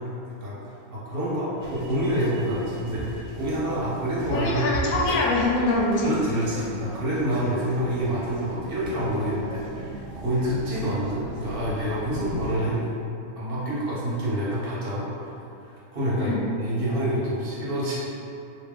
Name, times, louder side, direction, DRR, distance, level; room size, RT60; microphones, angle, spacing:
voice 1, 0.9-4.6 6.0-9.6 10.1-12.9 13.4-15.1 15.9-17.9, equal, 45° right, -8 dB, 1.1 m, -27 dB
sound 1, 1.6-12.6, right 2 dB, 75° right, 1.0 m, -38 dB
voice 2, 4.3-6.1 16.2-16.4, left 2 dB, 75° left, -4 dB, 1.1 m, -24 dB
3.5 x 2.7 x 3.7 m, 2.7 s
omnidirectional pair, 1.5 m